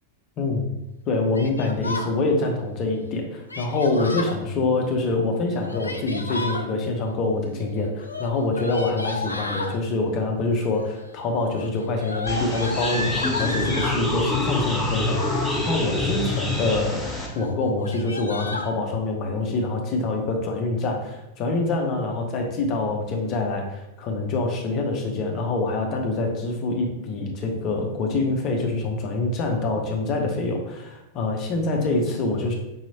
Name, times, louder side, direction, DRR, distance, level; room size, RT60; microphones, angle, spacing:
voice 1, 0.4-0.7 1.1-32.5, left 3 dB, 35° left, 2 dB, 0.9 m, -25 dB
Yell, 1.3-2.1 3.5-4.4 5.5-6.7 8.0-9.8 10.6-11.0 11.3-14.0 14.9-15.5 16.0-16.6 17.0-17.1 17.3-17.5 17.8-18.7, left 2 dB, 80° left, 0.4 m, -32 dB
sound 1, 12.3-17.3, left 2 dB, 5° left, 1.1 m, -26 dB
5.5 x 2.9 x 2.8 m, 0.91 s
figure-of-eight pair, 90°, 0 cm